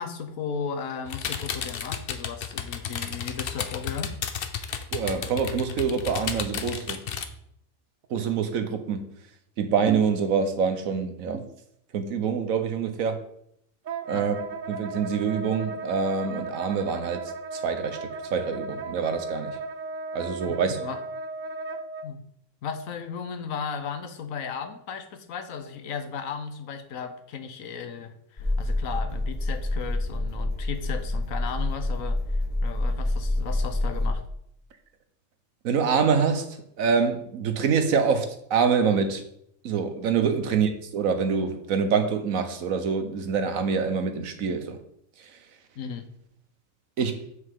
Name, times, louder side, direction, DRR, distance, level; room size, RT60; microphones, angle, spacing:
voice 1, 0.0-4.2 14.1-14.3 20.5-21.0 22.0-22.2 22.6-34.2 40.4-40.6 45.8-46.1, left 6 dB, 85° left, 1.3 m, -35 dB
sound 1, 1.1-7.3, left 7 dB, 55° left, 0.8 m, -33 dB
voice 2, 4.9-7.0 8.1-9.1 9.6-11.5 11.9-13.2 14.1-14.3 14.7-17.2 17.5-19.5 20.1-20.8 35.6-39.2 39.6-44.8 47.0-47.3, right 6 dB, 90° right, 1.3 m, -25 dB
Wind instrument woodwind instrument, 13.9-22.1, right 3 dB, 60° right, 0.5 m, -35 dB
sound 2, 28.4-34.1, left 1 dB, 25° left, 1.8 m, -27 dB
7.6 x 6.5 x 3.6 m
omnidirectional pair, 1.4 m